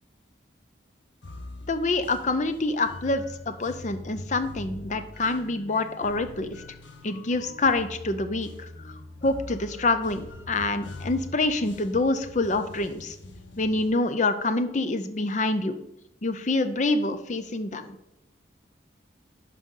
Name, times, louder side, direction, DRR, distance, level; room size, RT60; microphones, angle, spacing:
sound 1, 1.2-14.0, left 2 dB, 75° left, 0.9 m, -43 dB
voice 1, 1.7-6.5 7.0-8.9 9.2-13.2 13.6-15.8 16.2-18.0, left 2 dB, 40° left, 10 dB, 0.5 m, -26 dB
10.5 x 5.0 x 3.8 m, 0.87 s
head